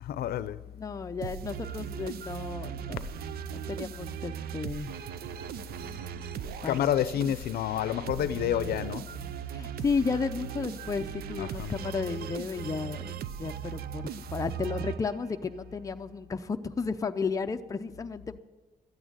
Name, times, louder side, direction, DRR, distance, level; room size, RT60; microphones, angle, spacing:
voice 1, 0.0-0.6 6.7-9.1 11.4-11.7, left 10 dB, 80° left, 0.6 m, -29 dB
voice 2, 0.7-3.1 3.5-4.9 5.8-6.0 6.4-6.8 9.5-18.4, left 5 dB, 20° left, 0.5 m, -33 dB
sound 1, 1.2-15.5, right 11 dB, 80° right, 0.5 m, -39 dB
13.0 x 8.8 x 9.4 m
cardioid pair, 145°, 16 cm